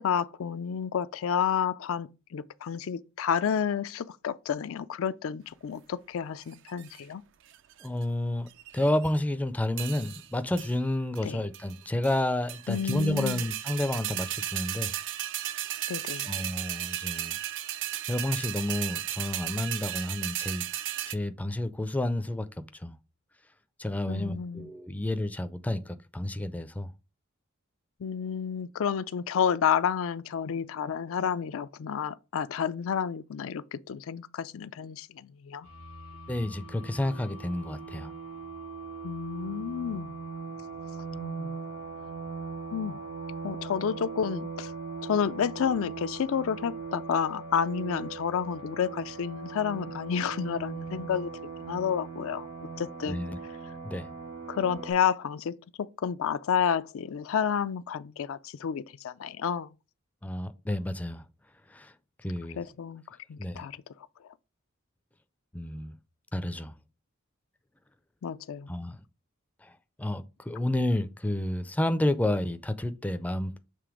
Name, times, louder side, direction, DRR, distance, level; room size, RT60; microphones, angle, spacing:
voice 1, 0.0-7.2 11.2-11.4 12.7-13.4 15.9-16.3 24.1-24.7 28.0-35.7 39.0-40.2 41.1-41.5 42.7-43.0 43.4-44.7 45.0-51.3 51.6-52.5 52.8-53.2 54.5-59.7 62.6-63.0 63.3-63.8 68.2-68.7, left 7 dB, 70° left, 0.4 m, -30 dB
sound 1, 6.5-7.0 7.5-8.0 8.5-9.2 9.8-10.3 10.6-10.7 11.2-11.3 11.5-12.2 12.5-21.1, right 13 dB, 60° right, 0.5 m, -35 dB
voice 2, 7.8-8.5 8.7-14.9 16.3-17.4 18.1-20.7 21.1-23.0 23.8-26.9 36.3-38.1 53.1-53.4 53.8-54.1 60.2-61.2 61.7-61.9 62.2-62.6 63.4-63.7 65.5-65.9 66.3-66.8 68.7-69.0 69.6-69.7 70.0-73.6, left 1 dB, 5° left, 0.4 m, -30 dB
sound 2, 35.6-54.9, right 4 dB, 75° right, 2.0 m, -40 dB
6.8 x 3.3 x 4.8 m
head